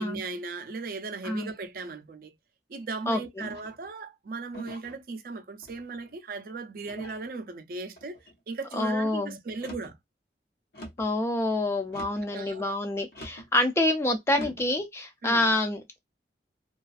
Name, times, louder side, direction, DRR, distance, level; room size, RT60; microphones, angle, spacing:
voice 1, 0.0-2.3 2.7-8.2 8.5-10.0 12.3-12.7 14.3-14.5 15.2-15.5, right 3 dB, 50° right, 0.4 m, -37 dB
sound 1, 3.4-3.9 4.5-5.0 5.6-6.1 6.9-7.3 7.9-8.4 9.5-10.0 10.7-11.1 11.9-12.3 13.1-13.5 14.3-14.7, equal, 60° left, 0.7 m, -44 dB
voice 2, 8.7-9.3 11.0-16.0, left 1 dB, 15° left, 0.3 m, -27 dB
2.4 x 2.3 x 2.4 m
head